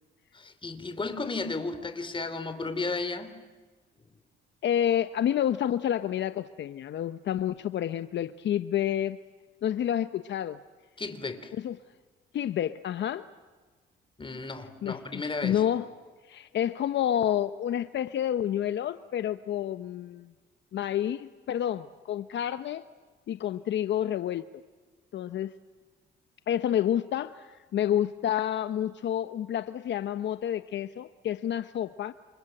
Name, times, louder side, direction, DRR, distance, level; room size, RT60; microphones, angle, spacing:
voice 1, 0.3-3.4 11.0-11.5 14.2-15.7, left 3 dB, 25° left, 3.1 m, -34 dB
voice 2, 4.6-9.2 9.6-10.6 11.5-11.8 12.3-13.3 14.8-15.9 16.3-20.3 20.7-22.8 23.3-24.5 25.1-25.5 26.5-32.1, left 10 dB, 65° left, 0.9 m, -29 dB
27.5 x 27.5 x 7.9 m
cardioid pair, 90°, 20 cm